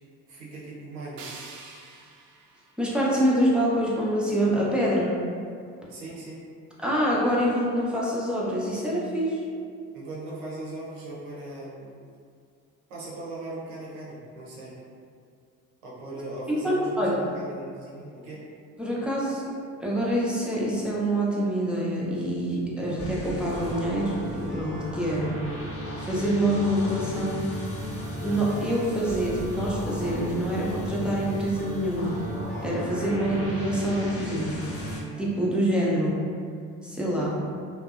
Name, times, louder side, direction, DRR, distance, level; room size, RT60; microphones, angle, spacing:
voice 1, 0.3-1.3 5.9-6.4 9.9-12.0 12.9-14.8 15.8-18.4, right 2 dB, 90° right, -6 dB, 0.7 m, -39 dB
sound 1, 1.2-4.1, right 4 dB, 50° right, 0.4 m, -47 dB
voice 2, 2.8-5.2 6.8-9.4 16.5-17.2 18.8-19.4 19.8-25.4 26.0-27.4 28.2-32.2 32.6-34.6 35.2-36.2 36.8-37.4, equal, ahead, -6 dB, 0.5 m, -26 dB
sound 2, 23.0-35.0, left 1 dB, 35° left, 0.7 m, -34 dB
2.5 x 2.0 x 2.4 m, 2.2 s
hypercardioid pair, 50°, 40 cm